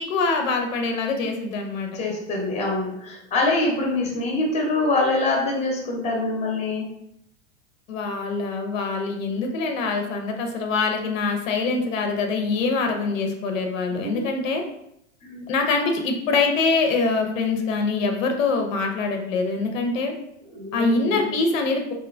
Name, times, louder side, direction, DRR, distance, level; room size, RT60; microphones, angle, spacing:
voice 1, 0.0-1.9 7.9-14.6 15.5-20.1 20.7-21.9, left 3 dB, 80° left, 4 dB, 0.6 m, -24 dB
voice 2, 1.9-6.9 14.0-14.2 15.2-15.4 20.5-21.3, left 2 dB, 15° left, -1 dB, 0.6 m, -25 dB
2.8 x 2.2 x 2.4 m, 0.77 s
hypercardioid pair, 115°, 39 cm